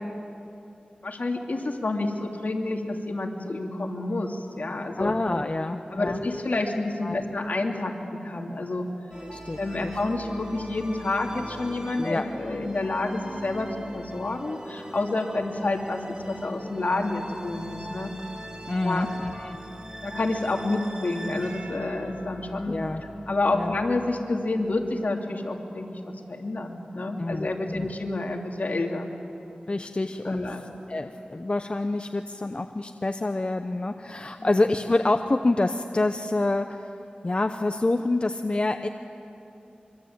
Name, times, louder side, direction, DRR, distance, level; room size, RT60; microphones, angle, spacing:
voice 1, 1.0-5.1 5.9-8.9 9.6-13.7 13.9-18.1 18.8-19.1 20.0-22.8 23.3-26.0 26.3-29.1 30.2-30.7 34.4-34.5, left 2 dB, 65° left, 1 dB, 2.8 m, -29 dB
voice 2, 5.0-6.2 7.0-7.2 9.3-9.9 12.0-12.3 18.7-19.6 22.7-23.0 23.5-23.7 27.2-27.8 29.7-30.6 30.9-36.9 37.2-38.9, left 2 dB, 40° left, 7 dB, 0.8 m, -27 dB
sound 1, 9.1-24.9, right 1 dB, 30° right, 3.3 m, -42 dB
25.0 x 24.5 x 8.8 m, 2.9 s
wide cardioid pair, 80°, 3 cm